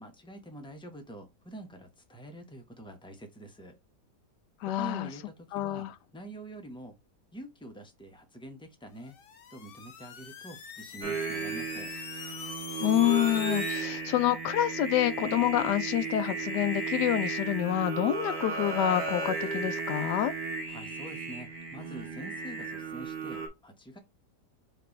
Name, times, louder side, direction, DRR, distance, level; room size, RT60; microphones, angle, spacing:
voice 1, 0.0-3.7 4.8-5.9 6.1-7.0 7.3-9.2 9.5-11.9 20.7-24.0, right 1 dB, 5° left, 0.7 m, -46 dB
voice 2, 4.6-5.1 5.5-5.9 12.8-20.3, left 13 dB, 90° left, 1.2 m, -27 dB
sound 1, 9.0-13.9, left 7 dB, 60° left, 0.6 m, -43 dB
Singing, 11.0-23.5, right 4 dB, 85° right, 1.8 m, -35 dB
5.1 x 3.4 x 3.0 m
omnidirectional pair, 1.8 m